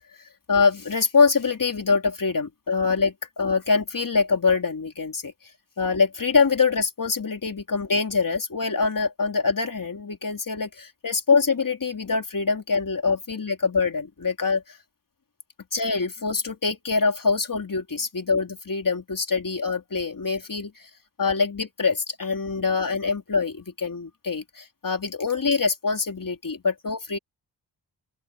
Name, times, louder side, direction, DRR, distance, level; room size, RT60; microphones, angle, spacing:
voice 1, 0.5-5.3 5.8-14.8 15.7-20.9 21.2-27.2, left 4 dB, 50° left, 3.5 m, -24 dB
open air
cardioid pair, 60°, 43 cm